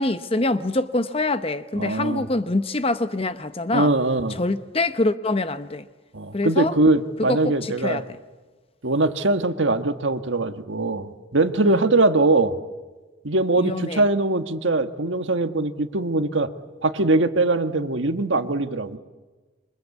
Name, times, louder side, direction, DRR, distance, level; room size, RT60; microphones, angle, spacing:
voice 1, 0.0-3.9 4.4-5.8 6.3-6.7 7.3-8.0 11.7-11.8 13.6-14.0, left 2 dB, 30° left, 0.8 m, -25 dB
voice 2, 1.8-2.2 3.7-4.4 6.1-8.0 8.8-12.6 13.2-16.5 16.8-19.0, right 2 dB, 70° right, 1.4 m, -22 dB
27.5 x 24.5 x 8.3 m
head